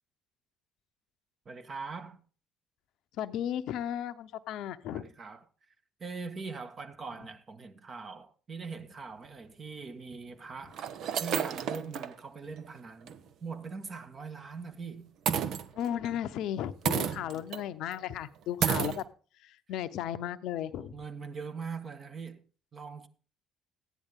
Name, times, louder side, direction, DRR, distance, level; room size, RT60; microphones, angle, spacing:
voice 1, 1.4-2.2 4.9-5.4 6.0-10.8 11.1-13.1 13.4-15.1 17.1-17.5 20.7-22.4 22.7-23.1, right 5 dB, 40° right, 1.6 m, -42 dB
voice 2, 3.2-5.0 15.8-19.0 19.4-20.9, left 10 dB, 70° left, 0.7 m, -35 dB
sound 1, 9.2-9.3 10.1-10.2 10.7-12.1 12.6-12.7 13.1-13.2 15.3-16.1 16.8-17.6 17.9-18.0 18.6-19.0, right 8 dB, 65° right, 0.9 m, -31 dB
14.0 x 10.0 x 3.7 m
hypercardioid pair, 65°, 0 cm